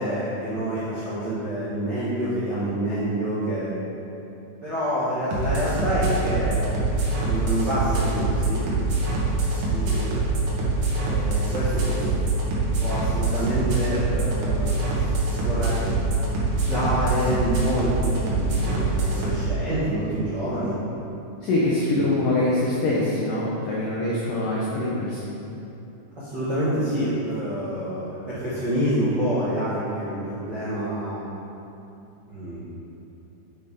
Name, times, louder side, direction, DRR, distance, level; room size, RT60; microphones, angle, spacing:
voice 1, 0.0-3.7 4.6-6.6 7.3-8.6 9.7-10.1 11.1-12.1 12.8-15.1 15.4-15.8 16.4-20.8 21.9-22.2 26.2-31.3 32.3-32.7, right 1 dB, 80° right, -13 dB, 0.9 m, -27 dB
sound 1, 5.3-19.3, right 2 dB, 65° right, 2.2 m, -24 dB
voice 2, 21.4-25.3, left 2 dB, 85° left, -6 dB, 1.8 m, -24 dB
6.8 x 6.3 x 4.1 m, 2.8 s
omnidirectional pair, 5.0 m